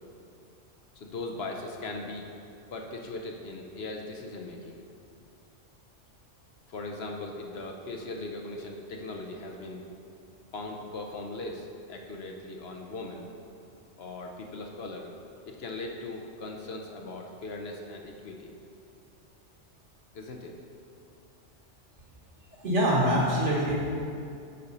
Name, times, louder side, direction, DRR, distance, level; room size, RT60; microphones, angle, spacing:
voice 1, 0.9-2.3 2.7-4.8 6.7-9.8 10.5-13.3 14.0-15.1 15.5-18.5 20.1-20.5, left 2 dB, 60° left, 1 dB, 0.9 m, -39 dB
voice 2, 22.6-23.7, equal, 65° right, -4 dB, 1.9 m, -24 dB
9.6 x 4.2 x 5.2 m, 2.5 s
omnidirectional pair, 1.3 m